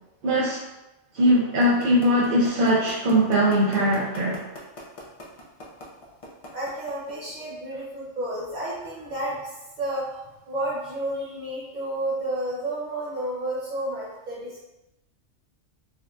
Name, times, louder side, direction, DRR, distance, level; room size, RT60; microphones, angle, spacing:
voice 1, 0.2-0.6 1.1-4.4, equal, 60° right, -7 dB, 0.6 m, -21 dB
sound 1, 1.6-7.3, left 1 dB, 50° left, 0.4 m, -40 dB
voice 2, 6.5-9.4 9.8-10.2 10.5-14.6, right 1 dB, 40° right, -7 dB, 1.2 m, -31 dB
4.1 x 2.1 x 2.5 m, 0.97 s
omnidirectional pair, 1.3 m